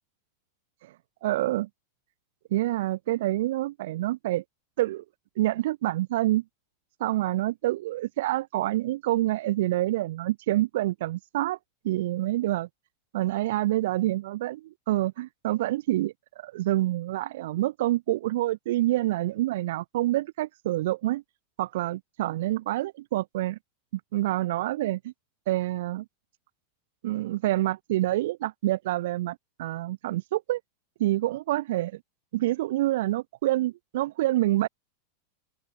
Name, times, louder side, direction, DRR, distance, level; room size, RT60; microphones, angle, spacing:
voice 1, 1.2-1.7 2.5-4.4 4.8-5.0 5.4-6.4 7.0-11.6 11.8-12.7 13.1-16.1 16.4-21.2 21.6-23.6 24.1-25.1 25.5-26.0 27.0-30.6 31.0-32.0 32.3-34.7, right 16 dB, 65° right, 4.3 m, -27 dB
supercardioid pair, 150°, 0 cm